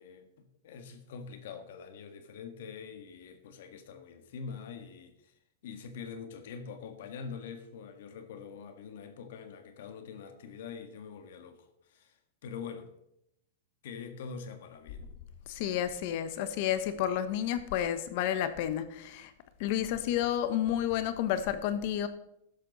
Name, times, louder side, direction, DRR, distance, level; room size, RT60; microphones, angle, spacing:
voice 1, 0.0-5.3 5.6-12.2 12.4-12.9 13.8-15.1, left 6 dB, 65° left, 1.6 m, -44 dB
voice 2, 15.5-19.3 19.6-22.1, left 10 dB, 50° left, 1.2 m, -31 dB
12.5 x 10.5 x 4.1 m
supercardioid pair, 150°, 0 cm